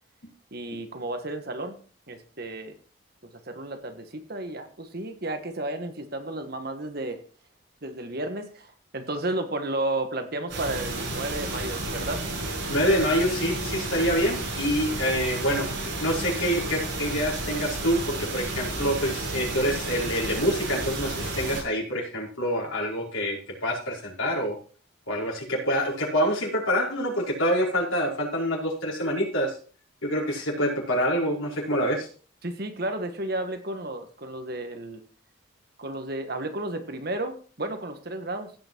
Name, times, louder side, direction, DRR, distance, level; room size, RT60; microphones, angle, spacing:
voice 1, 0.5-1.8 2.1-2.7 3.5-7.2 7.8-12.2 32.4-35.0 35.8-38.5, right 2 dB, 50° right, 7 dB, 1.4 m, -32 dB
sound 1, 10.5-21.6, right 2 dB, 65° right, 6.6 m, -32 dB
voice 2, 12.7-24.6 25.1-29.6 30.0-32.1, equal, 80° left, -3 dB, 5.1 m, -26 dB
16.0 x 5.9 x 4.5 m, 0.40 s
head